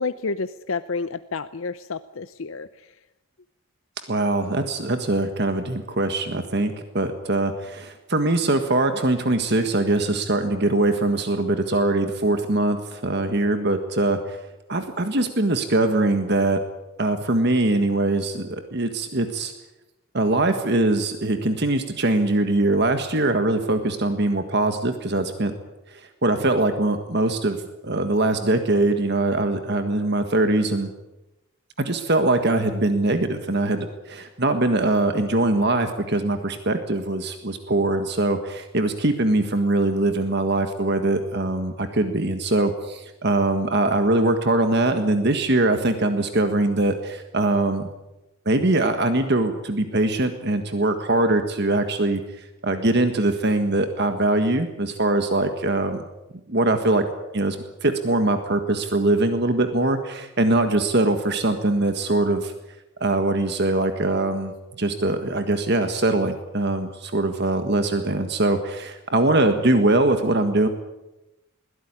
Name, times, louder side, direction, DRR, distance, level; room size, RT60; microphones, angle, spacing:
voice 1, 0.0-2.9, left 4 dB, 65° left, 12 dB, 0.7 m, -30 dB
voice 2, 4.1-14.4 14.7-16.6 17.0-19.5 20.1-25.5 25.9-30.9 31.8-47.9 48.4-56.0 56.5-57.1 57.3-62.5 63.0-70.7, right 2 dB, 50° right, 7 dB, 1.7 m, -22 dB
21.5 x 16.5 x 9.8 m, 0.98 s
head